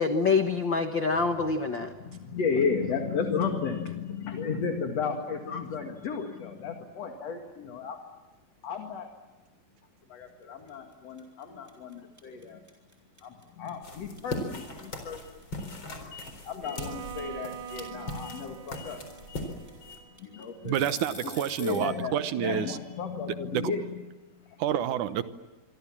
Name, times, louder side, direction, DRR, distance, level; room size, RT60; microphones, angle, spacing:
voice 1, 0.0-1.9 5.5-5.6, left 4 dB, 90° left, 7 dB, 1.0 m, -26 dB
voice 2, 1.8-8.0 8.6-9.1 10.1-12.6 13.2-19.0 19.3-20.8 21.2-21.3 21.6-24.6, left 5 dB, 50° left, 4 dB, 2.8 m, -34 dB
sound 1, 10.7-10.9 11.2-21.9, left 2 dB, 5° right, 5.1 m, -46 dB
sound 2, 13.8-20.0, left 2 dB, 30° left, 4.5 m, -40 dB
Bowed string instrument, 16.6-20.6, right 9 dB, 90° right, 3.3 m, -44 dB
voice 3, 20.7-22.8 23.5-23.6 24.6-25.2, right 10 dB, 65° right, 12 dB, 2.2 m, -28 dB
27.0 x 24.5 x 7.4 m, 1.1 s
omnidirectional pair, 4.3 m